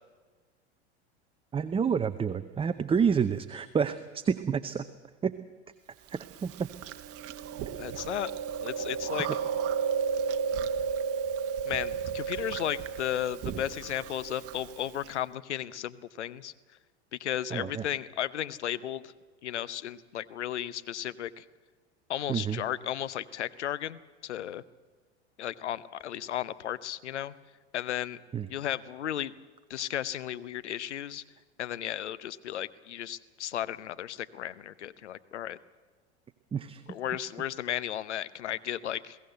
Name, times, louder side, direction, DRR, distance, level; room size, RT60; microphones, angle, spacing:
voice 1, 1.5-4.9 5.2-5.3 6.1-6.7 9.2-9.3 17.5-17.9 22.3-22.6 28.3-28.5 36.5-36.8, right 6 dB, 15° right, 12 dB, 0.7 m, -29 dB
Chewing mastication, 6.1-15.1, right 6 dB, 40° right, 1.2 m, -33 dB
voice 2, 7.8-8.3 8.6-9.3 11.6-16.5 17.1-19.1 19.4-21.4 22.1-24.6 25.4-27.3 27.7-28.2 28.5-29.3 29.7-31.2 31.6-35.6 36.9-39.2, left 11 dB, 80° left, 16 dB, 0.8 m, -34 dB
21.5 x 16.5 x 8.0 m, 1.4 s
hypercardioid pair, 90°, 34 cm